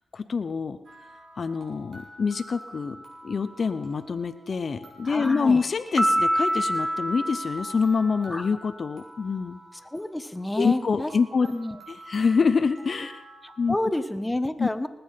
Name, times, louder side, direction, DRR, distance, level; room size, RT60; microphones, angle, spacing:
voice 1, 0.1-0.8 1.4-3.0 3.2-9.6 10.6-11.5 11.9-13.2 13.6-13.8 14.6-14.7, left 5 dB, 65° left, 10 dB, 0.7 m, -25 dB
sound 1, 0.8-13.9, right 1 dB, 75° right, 3.6 m, -48 dB
voice 2, 5.0-5.6 8.3-8.5 9.9-11.1 11.4-11.8 13.4-14.9, left 1 dB, 20° left, 11 dB, 1.2 m, -29 dB
Piano, 6.0-8.5, equal, 5° right, 0.9 m, -26 dB
19.5 x 7.0 x 5.7 m, 0.96 s
supercardioid pair, 45°, 0 cm